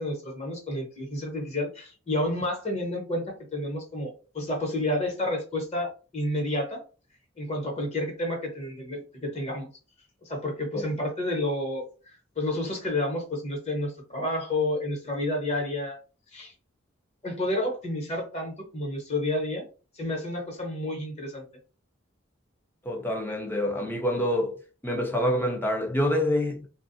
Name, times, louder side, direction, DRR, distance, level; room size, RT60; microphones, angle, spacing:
voice 1, 0.0-3.2 3.5-6.8 7.4-9.7 10.2-16.0 16.3-16.5 17.2-19.6 19.9-21.4, left 1 dB, 35° left, 1.2 m, -30 dB
voice 2, 22.9-24.5 24.8-26.7, left 1 dB, 10° left, 0.6 m, -26 dB
3.1 x 2.4 x 2.6 m
head